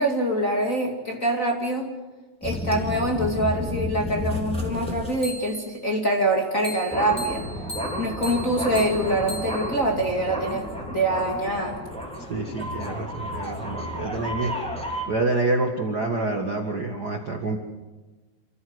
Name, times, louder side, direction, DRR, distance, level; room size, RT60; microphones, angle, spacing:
voice 1, 0.0-1.9 2.4-7.4 8.0-11.8, right 1 dB, 30° left, 0 dB, 1.7 m, -25 dB
sound 1, 2.4-5.8 6.6-15.0, equal, ahead, 3.2 m, -31 dB
voice 2, 12.3-14.5 15.1-17.6, right 2 dB, 65° right, 3 dB, 1.0 m, -27 dB
28.0 x 15.0 x 8.0 m, 1.2 s
omnidirectional pair, 4.9 m